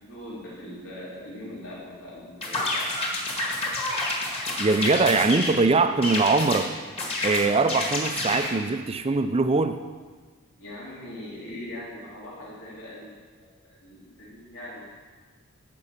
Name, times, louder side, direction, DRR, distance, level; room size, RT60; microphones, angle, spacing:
voice 1, 0.0-2.9 4.9-5.1 10.5-15.0, left 1 dB, 65° left, -7 dB, 3.3 m, -41 dB
sound 1, 2.4-5.6 6.0-6.6 7.0-8.5, left 2 dB, 30° left, 1.9 m, -29 dB
voice 2, 4.6-6.7 7.2-9.8, right 3 dB, 25° right, 8 dB, 0.5 m, -22 dB
12.5 x 5.3 x 7.5 m, 1.5 s
head